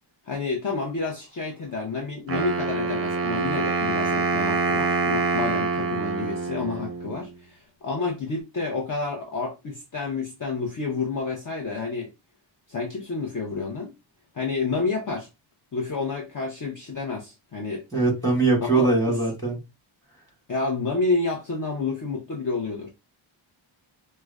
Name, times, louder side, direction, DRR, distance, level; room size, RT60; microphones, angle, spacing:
voice 1, 0.3-12.1 12.7-13.9 14.3-15.3 15.7-17.8 18.7-18.9 20.5-22.9, left 4 dB, 40° left, 0.7 m, -29 dB
Wind instrument woodwind instrument, 2.3-7.2, right 4 dB, 30° right, 0.5 m, -25 dB
voice 2, 17.9-19.6, right 3 dB, 5° left, 1.8 m, -21 dB
4.7 x 2.2 x 2.3 m
wide cardioid pair, 155°, 49 cm